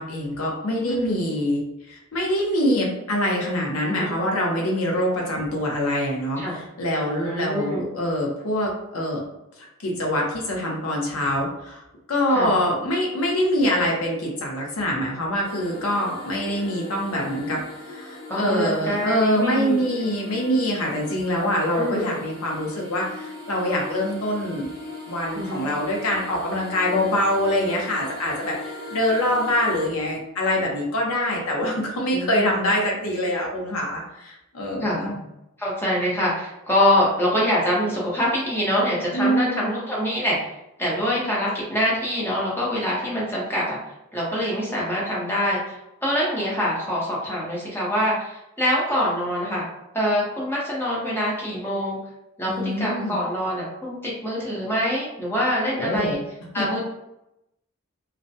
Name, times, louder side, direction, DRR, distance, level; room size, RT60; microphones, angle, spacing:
voice 1, 0.0-1.6 1.9-9.2 9.8-11.8 12.1-24.7 25.1-35.1 39.1-39.7 52.5-53.1 55.7-56.2 56.6-56.7, equal, 90° left, -1 dB, 0.7 m, -24 dB
voice 2, 0.9-1.2 3.9-4.1 6.4-6.6 7.2-7.8 12.3-12.5 18.3-20.2 21.7-22.1 25.3-25.7 32.1-32.6 34.8-35.2 35.6-40.4 40.8-43.8 44.1-49.7 49.9-52.0 52.4-56.2 56.5-56.8, equal, 10° left, -5 dB, 0.6 m, -25 dB
sound 1, 15.4-29.9, left 2 dB, 45° left, 0.9 m, -39 dB
2.4 x 2.1 x 2.6 m, 0.87 s
head